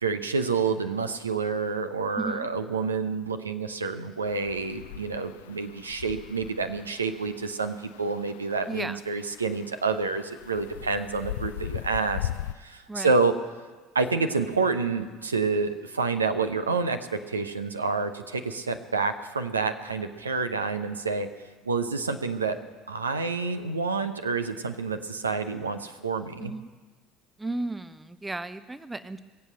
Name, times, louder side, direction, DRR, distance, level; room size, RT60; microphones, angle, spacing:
voice 1, 0.0-12.3 12.6-13.3 13.9-21.3 21.7-22.6 22.9-26.5, right 4 dB, 80° right, 9 dB, 0.8 m, -28 dB
voice 2, 2.1-2.5 8.7-9.0 12.9-13.2 26.4-26.7 27.4-29.2, right 2 dB, 10° right, 14 dB, 0.7 m, -34 dB
sound 1, 4.2-12.5, left 13 dB, 65° left, 0.4 m, -39 dB
22.0 x 7.8 x 7.8 m, 1.4 s
figure-of-eight pair, 65°, 0 cm